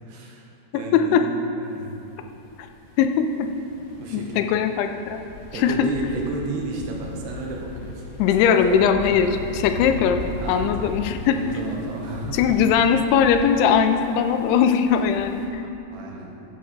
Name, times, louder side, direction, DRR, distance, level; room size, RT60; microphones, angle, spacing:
voice 1, 0.1-0.5 0.7-2.1 4.0-4.6 5.5-8.0 8.5-8.8 9.1-9.2 10.4-12.4 15.9-16.4, right 2 dB, 90° right, -1 dB, 3.3 m, -33 dB
voice 2, 0.9-1.2 3.0-3.5 4.1-5.2 5.6-5.9 8.2-10.2 10.5-11.4 12.3-15.6, left 7 dB, 85° left, 7 dB, 2.6 m, -20 dB
sound 1, 1.8-15.5, left 2 dB, 65° left, 2.2 m, -38 dB
13.5 x 7.7 x 4.0 m, 2.7 s
omnidirectional pair, 4.7 m